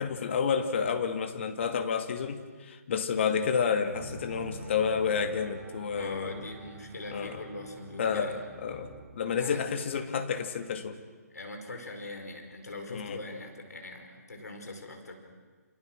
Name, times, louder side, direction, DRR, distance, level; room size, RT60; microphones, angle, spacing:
voice 1, 0.0-6.3 7.1-7.4 8.0-11.0 12.9-13.2, left 6 dB, 45° left, 7 dB, 2.4 m, -30 dB
sound 1, 3.9-9.0, right 3 dB, 25° right, 4.0 m, -46 dB
voice 2, 5.9-8.4 9.4-9.6 11.3-15.1, left 2 dB, 70° left, 4 dB, 5.0 m, -42 dB
29.0 x 28.5 x 6.4 m, 1.4 s
figure-of-eight pair, 140°, 9 cm